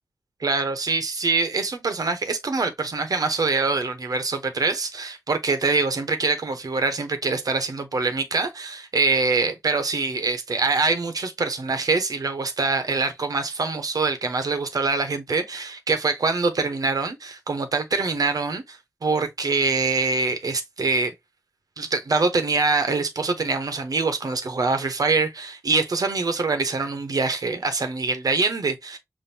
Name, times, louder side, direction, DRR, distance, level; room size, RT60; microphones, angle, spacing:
voice 1, 0.4-18.8 19.0-21.1 21.8-29.0, right 3 dB, 70° right, 0.8 m, -24 dB
5.3 x 2.6 x 2.6 m
wide cardioid pair, 55°, 6 cm